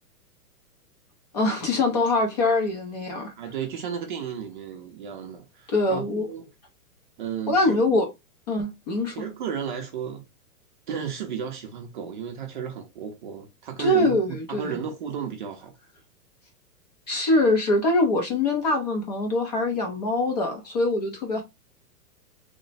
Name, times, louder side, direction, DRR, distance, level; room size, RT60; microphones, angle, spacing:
voice 1, 1.3-3.3 5.7-6.3 7.5-8.1 8.5-9.2 13.8-14.8 17.1-21.4, left 2 dB, 30° left, 0.5 m, -23 dB
voice 2, 3.4-6.5 7.2-8.0 9.1-10.2 10.9-15.7, right 7 dB, 35° right, 0.5 m, -33 dB
3.1 x 2.1 x 3.9 m
hypercardioid pair, 155°, 46 cm